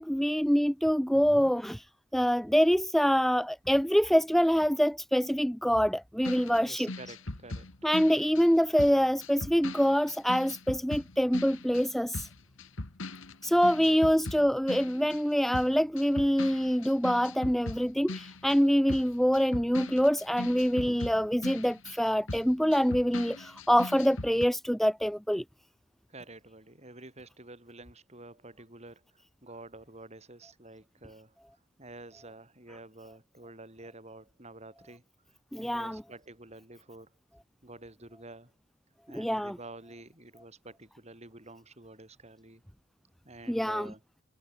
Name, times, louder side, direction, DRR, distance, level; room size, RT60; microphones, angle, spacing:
voice 1, 0.0-1.8 2.1-6.9 7.8-12.3 13.4-25.4 35.5-36.0 39.1-39.6 43.5-43.9, equal, ahead, 0.5 m, -25 dB
sound 1, 6.2-15.3 15.5-24.4, left 2 dB, 75° left, 1.8 m, -40 dB
voice 2, 6.5-7.9 13.4-14.1 26.1-31.4 31.8-35.0 35.6-37.1 37.6-38.5 39.1-42.6 43.3-44.0, right 2 dB, 30° right, 5.2 m, -49 dB
head